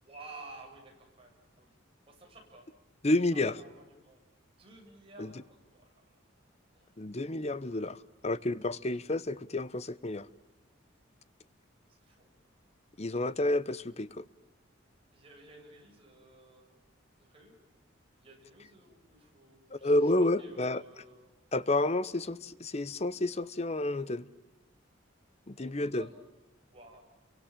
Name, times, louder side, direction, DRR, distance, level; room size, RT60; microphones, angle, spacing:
voice 1, 0.0-1.8 2.1-2.7 3.3-4.2 4.6-5.9 6.7-7.0 11.8-12.3 15.1-16.8 17.2-17.5 18.1-21.3 25.6-26.1 26.7-27.0, right 2 dB, 30° right, 7.9 m, -53 dB
voice 2, 3.0-3.6 5.2-5.3 7.0-10.3 13.0-14.2 19.7-20.8 21.5-24.2 25.5-26.1, left 2 dB, 35° left, 0.8 m, -30 dB
30.0 x 24.0 x 7.4 m
head